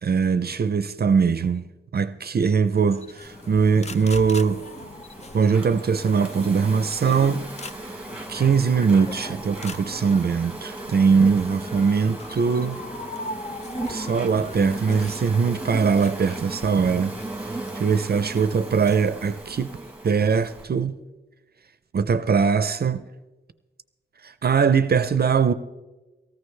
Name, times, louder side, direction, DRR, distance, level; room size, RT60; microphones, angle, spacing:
voice 1, 0.0-1.7 1.9-4.6 5.3-7.5 7.9-8.0 8.3-12.8 13.9-17.2 17.7-19.8 20.0-21.0 21.9-23.0 24.2-25.5, right 5 dB, 55° right, 0.5 m, -21 dB
sound 1, 2.8-19.0, left 3 dB, 35° left, 0.5 m, -41 dB
Insect, 3.2-20.6, right 2 dB, 5° right, 1.4 m, -37 dB
19.5 x 14.5 x 3.2 m
wide cardioid pair, 135°, 20 cm